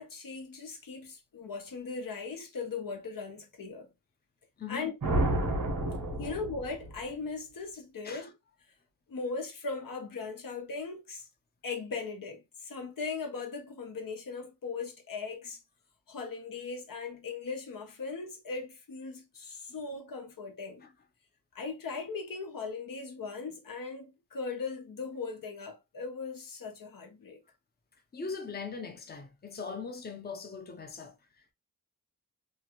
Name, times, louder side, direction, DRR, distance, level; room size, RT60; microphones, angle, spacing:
voice 1, 0.0-3.9 4.7-4.9 6.2-8.3 9.1-11.3 11.6-15.6 16.1-20.8 21.5-27.4, left 4 dB, 80° left, 0.8 m, -39 dB
voice 2, 4.6-4.9 6.2-6.3 8.0-8.3 20.8-20.9 28.1-31.5, left 5 dB, 30° left, 0.6 m, -41 dB
sound 1, 5.0-7.0, right 1 dB, 90° right, 1.2 m, -30 dB
3.0 x 2.5 x 2.9 m
wide cardioid pair, 105°, 33 cm